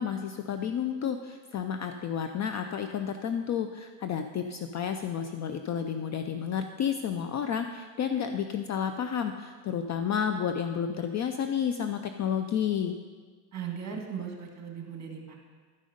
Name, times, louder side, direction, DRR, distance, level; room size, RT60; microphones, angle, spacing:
voice 1, 0.0-13.0, left 8 dB, 35° left, 7 dB, 0.4 m, -31 dB
voice 2, 13.5-15.4, right 7 dB, 30° right, 1 dB, 2.1 m, -38 dB
12.0 x 5.3 x 5.0 m, 1.5 s
supercardioid pair, 100°, 50 cm